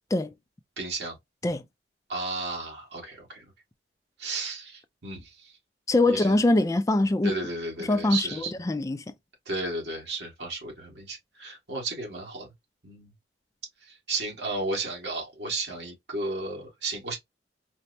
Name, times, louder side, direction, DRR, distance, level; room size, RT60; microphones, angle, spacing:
voice 1, 0.8-1.2 2.1-3.5 4.2-5.5 6.1-6.4 7.2-8.5 9.5-12.5 12.8-13.1 13.8-17.2, right 3 dB, 65° right, 1.7 m, -33 dB
voice 2, 5.9-7.3 7.9-9.0, left 2 dB, 15° left, 0.3 m, -23 dB
4.3 x 2.0 x 2.6 m
head